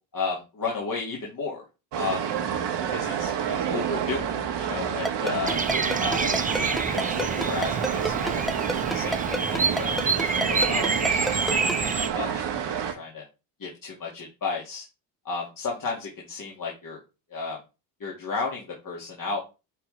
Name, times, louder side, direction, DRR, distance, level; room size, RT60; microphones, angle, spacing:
voice 1, 0.1-1.6 1.9-2.3 2.9-5.6 6.0-8.4 8.9-10.0 10.3-12.4 12.8-13.2 13.6-14.9 15.3-17.0 17.3-17.6 18.0-19.4, left 4 dB, 40° left, -2 dB, 2.0 m, -33 dB
sound 1, 1.9-12.9, right 8 dB, 55° right, 1.4 m, -29 dB
Ringtone, 5.1-11.7, equal, ahead, 0.3 m, -28 dB
Bird vocalization bird call bird song, 5.4-12.1, right 4 dB, 15° right, 0.8 m, -28 dB
9.7 x 3.5 x 3.3 m, 0.29 s
supercardioid pair, 65°, 49 cm